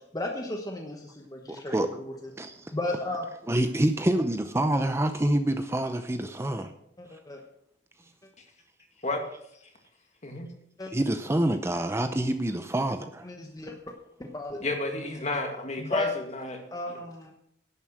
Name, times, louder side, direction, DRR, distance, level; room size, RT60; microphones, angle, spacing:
voice 1, 0.1-2.3 2.7-3.3 6.6-6.7 7.0-7.4 10.8-10.9 13.2-13.9 14.3-14.6 15.8-16.1 16.7-17.3, left 2 dB, 20° left, 2 dB, 1.1 m, -34 dB
voice 2, 1.5-1.9 2.4-2.7 3.5-6.7 10.9-13.3, right 1 dB, 15° right, 8 dB, 0.6 m, -27 dB
voice 3, 14.6-16.6 16.9-17.0, left 2 dB, 40° left, 4 dB, 2.1 m, -31 dB
11.0 x 9.2 x 6.4 m, 0.75 s
head